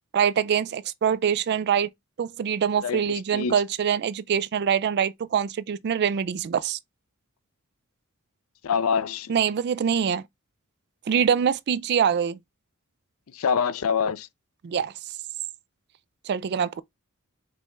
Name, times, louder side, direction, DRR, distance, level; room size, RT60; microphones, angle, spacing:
voice 1, 0.1-1.9 2.2-6.8 9.3-10.2 11.1-12.4 14.6-14.9 16.3-16.8, right 8 dB, 50° right, 0.4 m, -24 dB
voice 2, 2.8-3.6 8.6-9.3 13.3-14.3, left 6 dB, 75° left, 0.5 m, -25 dB
5.0 x 3.3 x 3.1 m
head